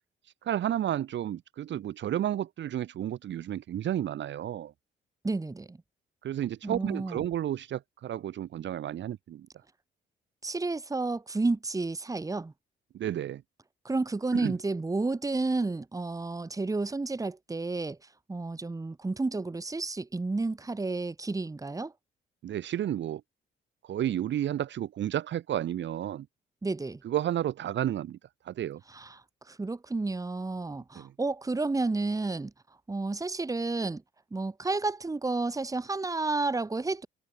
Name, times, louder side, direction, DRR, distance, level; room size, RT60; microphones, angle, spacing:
voice 1, 0.4-4.7 6.2-9.5 12.9-13.4 14.3-14.5 22.4-23.2 23.9-26.2 27.0-28.2 28.5-28.8 31.0-31.1, right 11 dB, 65° right, 1.5 m, -31 dB
voice 2, 5.2-5.8 6.6-7.2 10.4-12.5 13.8-18.0 18.3-21.9 26.6-27.0 28.9-32.5 32.9-34.0 34.3-37.1, right 3 dB, 15° right, 1.5 m, -31 dB
cardioid pair, 90°, 20 cm